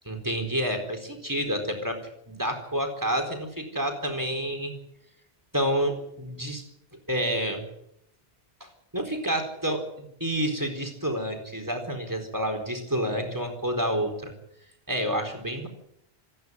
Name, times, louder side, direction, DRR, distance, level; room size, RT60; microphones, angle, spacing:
voice 1, 0.0-2.0 2.3-4.7 5.5-6.6 7.1-7.6 8.6-9.8 10.2-14.3 14.9-15.7, equal, 15° right, 5 dB, 4.2 m, -29 dB
27.0 x 11.0 x 9.4 m, 0.77 s
omnidirectional pair, 1.1 m